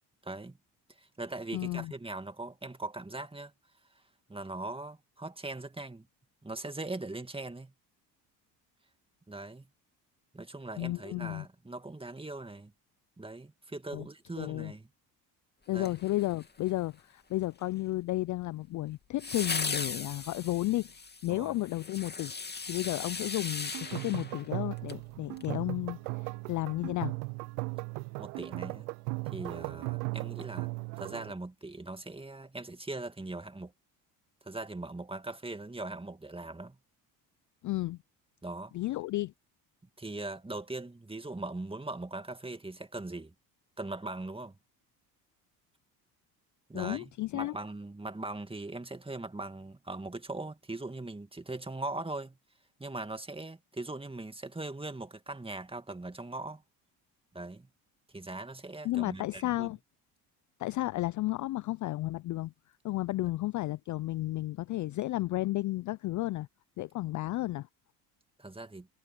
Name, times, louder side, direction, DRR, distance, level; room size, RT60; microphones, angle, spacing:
voice 1, 0.2-0.6 0.9-3.5 4.3-6.1 6.4-7.7 9.3-9.7 10.3-12.7 13.2-14.9 15.7-15.9 21.3-21.5 28.2-28.9 29.3-30.7 31.0-33.7 34.4-36.8 38.4-38.7 40.0-43.3 43.8-44.6 46.7-52.4 52.8-56.6 57.3-57.7 58.1-59.7 68.4-68.9, right 2 dB, 10° right, 2.3 m, -40 dB
voice 2, 1.5-1.9 10.8-11.4 13.9-14.1 14.4-14.7 15.7-22.3 22.7-27.1 37.6-38.0 38.7-39.3 46.7-47.6 58.8-59.8 60.6-62.5 62.8-66.5 66.8-67.7, left 17 dB, 40° left, 0.4 m, -33 dB
sound 1, 15.8-16.7 19.2-25.0 25.4-25.5, left 4 dB, 20° left, 2.6 m, -38 dB
sound 2, 23.7-31.3, right 33 dB, 80° right, 0.6 m, -37 dB
hypercardioid pair, 70°, 48 cm